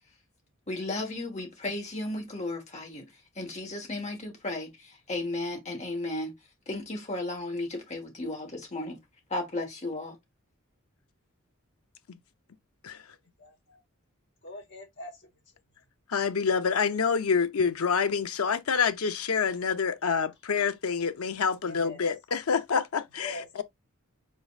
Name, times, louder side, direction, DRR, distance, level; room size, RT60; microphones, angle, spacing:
voice 1, 0.7-3.1 3.4-6.3 6.7-9.0 9.3-10.2, left 2 dB, 30° left, 1.6 m, -34 dB
voice 2, 13.4-13.8 14.4-15.1 21.6-22.0 23.2-23.6, left 2 dB, 55° left, 1.5 m, -41 dB
voice 3, 16.1-23.6, left 6 dB, 85° left, 0.6 m, -27 dB
5.2 x 4.0 x 2.5 m
head